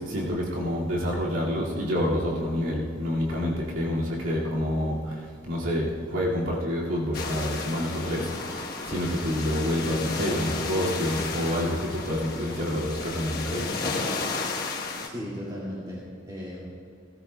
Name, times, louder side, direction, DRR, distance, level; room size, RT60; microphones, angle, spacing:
voice 1, 0.0-13.7, left 1 dB, 85° right, -6 dB, 2.2 m, -28 dB
sound 1, 7.1-15.1, left 3 dB, 50° left, 1.2 m, -33 dB
voice 2, 15.0-16.7, equal, 20° right, -8 dB, 2.1 m, -36 dB
18.0 x 14.5 x 2.3 m, 2.4 s
head